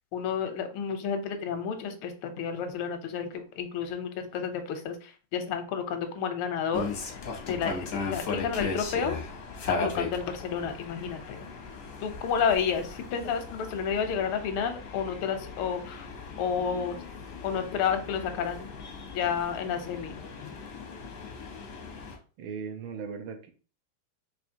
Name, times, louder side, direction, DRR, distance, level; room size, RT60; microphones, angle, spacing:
voice 1, 0.1-7.2 7.5-9.2 9.7-11.5 12.0-16.1 16.4-17.0 17.4-18.7 19.1-20.5, left 7 dB, 85° left, 7 dB, 1.5 m, -31 dB
sound 1, 6.7-22.2, left 4 dB, 60° left, 0.8 m, -37 dB
voice 2, 22.4-23.5, right 6 dB, 75° right, 6 dB, 1.3 m, -38 dB
4.9 x 2.8 x 2.6 m, 0.37 s
omnidirectional pair, 2.4 m